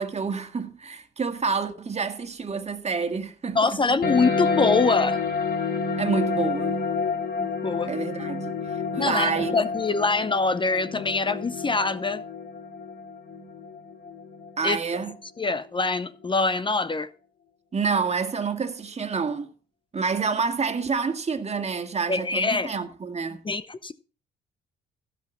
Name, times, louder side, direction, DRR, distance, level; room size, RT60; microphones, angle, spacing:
voice 1, 0.0-3.8 6.0-6.8 7.9-9.6 14.6-15.1 17.7-19.5 19.9-23.4, right 5 dB, 35° right, 1.8 m, -28 dB
voice 2, 3.5-5.2 7.4-7.9 9.0-12.2 14.6-14.8 15.4-17.1 22.1-22.7 23.4-23.9, left 3 dB, 25° left, 0.7 m, -24 dB
sound 1, 4.0-15.0, left 4 dB, 50° left, 2.2 m, -29 dB
15.5 x 5.9 x 6.0 m
cardioid pair, 90°, 20 cm